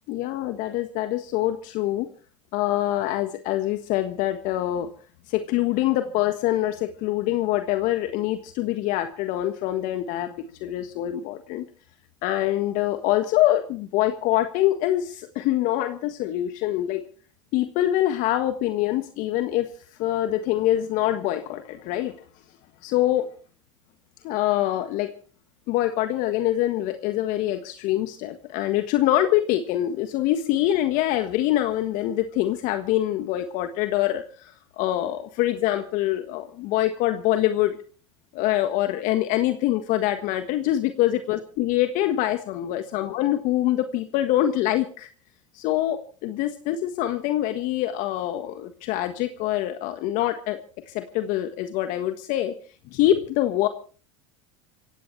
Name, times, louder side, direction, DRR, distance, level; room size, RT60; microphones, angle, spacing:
voice 1, 0.1-2.1 2.5-4.9 5.3-11.7 12.2-17.0 17.5-19.7 20.0-22.1 22.8-23.3 24.2-25.1 25.7-37.8 38.3-45.1 45.5-50.6 50.9-52.5 52.9-53.7, left 13 dB, 60° left, 8 dB, 1.5 m, -25 dB
26.5 x 16.5 x 3.3 m, 0.39 s
hypercardioid pair, 85°, 15 cm